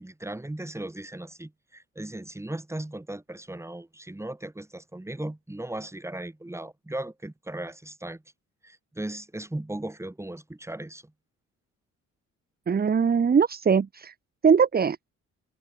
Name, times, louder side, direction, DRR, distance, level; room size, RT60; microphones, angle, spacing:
voice 1, 0.0-8.2 8.6-11.1, right 1 dB, 10° right, 4.8 m, -37 dB
voice 2, 12.7-14.1 14.4-15.0, right 6 dB, 30° right, 1.1 m, -21 dB
cardioid pair, 90°, 30 cm